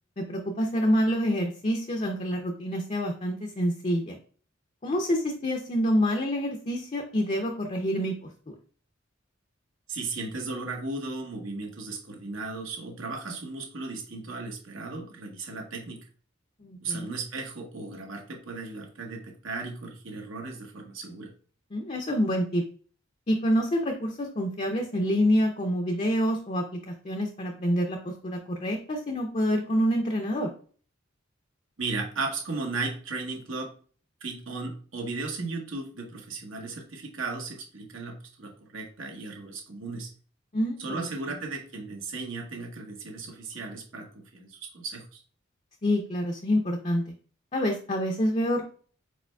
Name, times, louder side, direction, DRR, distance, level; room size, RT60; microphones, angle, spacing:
voice 1, 0.2-4.2 4.8-8.1 16.6-17.1 21.7-22.6 23.3-30.5 40.5-41.1 45.8-47.0 47.5-48.6, equal, 35° left, 2 dB, 0.6 m, -27 dB
voice 2, 9.9-16.0 16.8-21.3 31.8-33.7 34.2-40.1 40.8-45.2, right 3 dB, 75° right, 2 dB, 1.1 m, -36 dB
4.9 x 4.3 x 2.3 m, 0.43 s
head